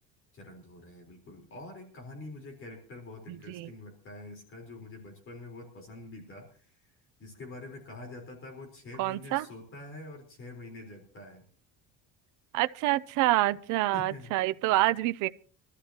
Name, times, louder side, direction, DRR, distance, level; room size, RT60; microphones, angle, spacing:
voice 1, 0.3-6.8 7.2-11.4 13.9-14.3, left 2 dB, 40° left, 3.9 m, -46 dB
voice 2, 3.3-3.7 9.0-9.5 12.5-15.3, right 16 dB, 65° right, 0.6 m, -27 dB
25.0 x 13.5 x 2.9 m
cardioid pair, 175°, 33 cm